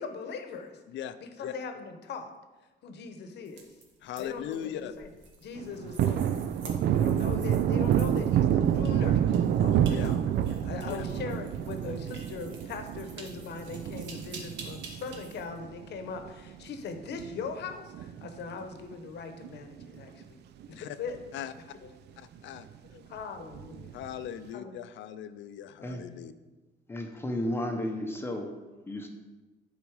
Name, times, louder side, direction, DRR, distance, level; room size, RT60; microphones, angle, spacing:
voice 1, 0.0-0.8 1.2-2.3 2.8-3.7 4.2-5.1 5.4-6.4 6.9-9.2 9.6-10.2 10.6-20.4 20.7-21.2 21.7-21.9 22.9-24.0 24.5-24.8, left 5 dB, 65° left, 7 dB, 0.9 m, -40 dB
sound 1, 3.4-15.4, right 4 dB, 90° right, 1.5 m, -49 dB
voice 2, 4.0-4.9 9.9-10.1 10.9-11.0 20.7-21.0 21.3-21.5 22.2-22.7 23.9-26.3, left 10 dB, 85° left, 12 dB, 0.5 m, -39 dB
Thunder, 5.6-16.3 16.7-16.8 17.1-18.6 18.9-19.1 19.4-20.2 20.6-20.7 21.1-21.2 23.5-24.1, right 10 dB, 65° right, 0.4 m, -28 dB
voice 3, 26.9-28.5 28.9-29.1, left 1 dB, 10° left, 3 dB, 0.7 m, -33 dB
11.0 x 4.1 x 4.8 m, 1.2 s
cardioid pair, 170°, 19 cm